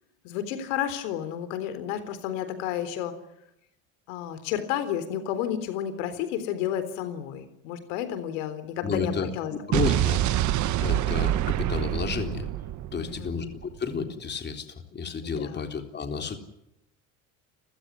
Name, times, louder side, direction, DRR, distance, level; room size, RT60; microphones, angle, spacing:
voice 1, 0.2-3.2 4.1-10.0 12.9-13.4 15.2-15.7, left 10 dB, 85° left, 11 dB, 3.8 m, -31 dB
voice 2, 8.8-10.2 10.8-12.5 12.9-14.7 14.9-16.4, left 5 dB, 25° left, 6 dB, 3.8 m, -31 dB
Explosion, 9.7-13.8, right 13 dB, 50° right, 1.3 m, -26 dB
30.0 x 16.0 x 9.8 m, 0.83 s
supercardioid pair, 110°, 37 cm